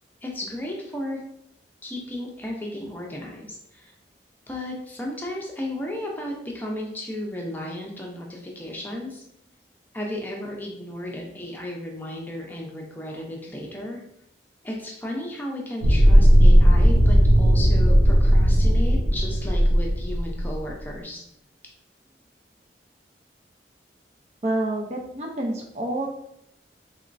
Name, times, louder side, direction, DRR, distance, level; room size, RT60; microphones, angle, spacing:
voice 1, 0.2-1.2 1.8-3.9 4.5-9.2 9.9-14.0 14.6-21.2, left 1 dB, 10° left, -1 dB, 0.6 m, -34 dB
sound 1, 15.8-20.6, equal, 70° right, 0.8 m, -16 dB
voice 2, 24.4-26.1, right 1 dB, 35° right, 0 dB, 0.5 m, -28 dB
4.2 x 3.0 x 2.5 m, 0.77 s
head